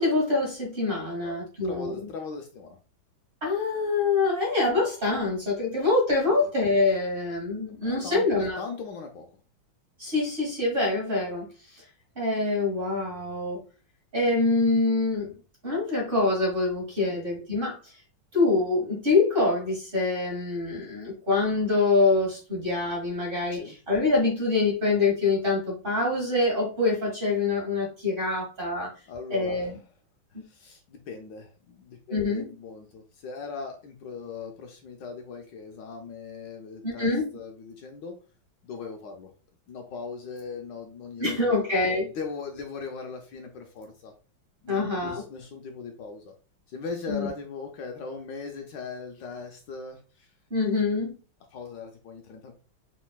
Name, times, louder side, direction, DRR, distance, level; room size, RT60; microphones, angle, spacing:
voice 1, 0.0-2.0 3.4-8.6 10.0-11.5 12.1-13.6 14.1-15.4 15.6-17.8 18.3-28.9 29.3-29.8 32.1-32.5 36.8-37.3 41.2-42.1 44.7-45.2 47.1-47.3 50.5-51.1, left 3 dB, 30° right, -3 dB, 1.7 m, -25 dB
voice 2, 1.6-2.8 7.7-9.3 17.0-17.2 23.5-23.8 29.1-29.8 30.4-38.2 38.6-39.3 39.7-41.6 42.1-44.1 44.6-46.3 46.7-50.3 51.5-52.5, left 4 dB, 75° left, 4 dB, 1.2 m, -39 dB
4.3 x 4.0 x 2.3 m, 0.34 s
omnidirectional pair, 2.2 m